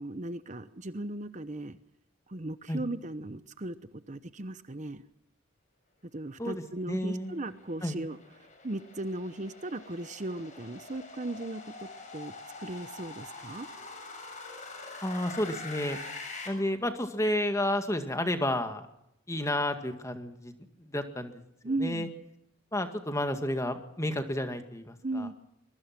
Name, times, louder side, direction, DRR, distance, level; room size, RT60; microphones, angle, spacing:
voice 1, 0.0-1.8 2.3-3.8 4.1-5.0 6.1-12.3 12.6-13.7 21.6-22.1 25.0-25.3, right 2 dB, 35° right, 12 dB, 0.9 m, -37 dB
voice 2, 6.4-7.4 7.8-8.0 15.0-16.0 16.5-18.9 19.3-20.5 20.8-21.4 21.8-22.1 22.7-25.3, left 1 dB, 15° left, 7 dB, 2.0 m, -31 dB
sound 1, 6.9-16.5, left 3 dB, 35° left, 7.0 m, -45 dB
24.0 x 22.5 x 6.0 m, 0.79 s
head